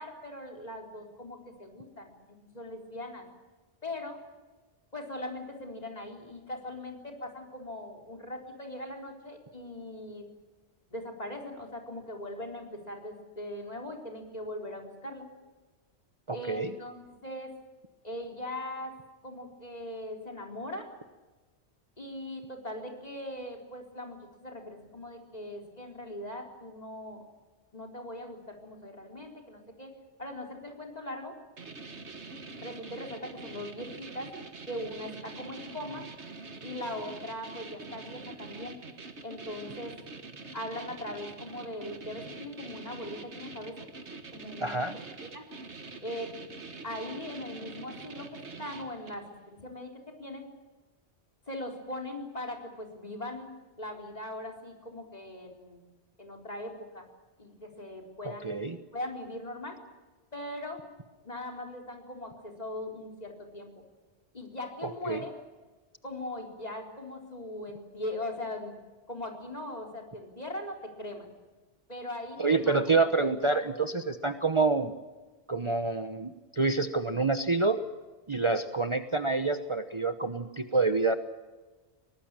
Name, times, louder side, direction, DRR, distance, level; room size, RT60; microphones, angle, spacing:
voice 1, 0.0-3.3 3.8-4.2 4.9-10.3 10.9-15.3 16.3-17.6 18.0-19.0 19.2-20.9 22.0-27.2 27.7-29.9 30.2-31.3 32.5-34.3 34.7-36.1 36.6-38.8 39.2-39.9 40.5-43.8 44.3-44.8 45.2-45.5 46.0-46.4 46.8-50.5 51.5-55.8 56.2-57.1 57.4-58.6 58.9-59.8 60.3-60.8 61.2-63.7 64.3-65.3 66.0-68.8 69.1-71.3 71.9-72.8, left 1 dB, 35° left, 2 dB, 4.2 m, -40 dB
voice 2, 16.3-16.7 44.6-44.9 58.4-58.7 65.0-65.2 72.4-74.9 75.5-77.8 78.3-81.1, right 3 dB, 30° right, 9 dB, 1.0 m, -27 dB
sound 1, 31.6-49.3, right 3 dB, 80° right, 2.1 m, -45 dB
23.5 x 19.0 x 9.0 m, 1.3 s
omnidirectional pair, 1.1 m